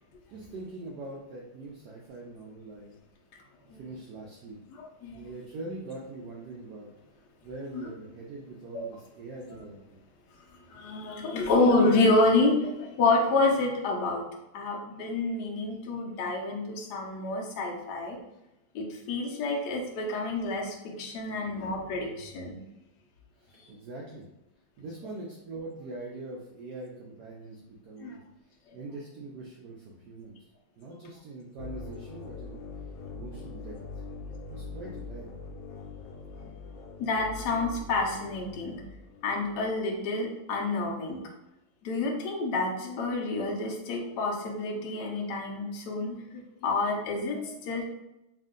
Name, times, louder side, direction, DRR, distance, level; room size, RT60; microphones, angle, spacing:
voice 1, 0.3-2.9 3.8-4.6 5.1-6.9 7.4-10.0 23.4-24.3 24.8-28.2 28.7-30.3 30.8-32.6 33.1-33.7 34.5-35.3 36.4-36.5, right 2 dB, 75° right, -3 dB, 0.9 m, -42 dB
voice 2, 4.7-5.3 7.7-7.9 9.5-9.6 10.7-14.2 14.5-18.2 18.7-22.6 28.0-28.1 37.0-38.8 39.2-41.2 41.8-47.8, left 2 dB, 65° left, -1 dB, 1.1 m, -28 dB
sound 1, 31.6-39.7, left 3 dB, 80° left, 1.4 m, -43 dB
3.6 x 2.4 x 3.7 m, 0.91 s
omnidirectional pair, 2.3 m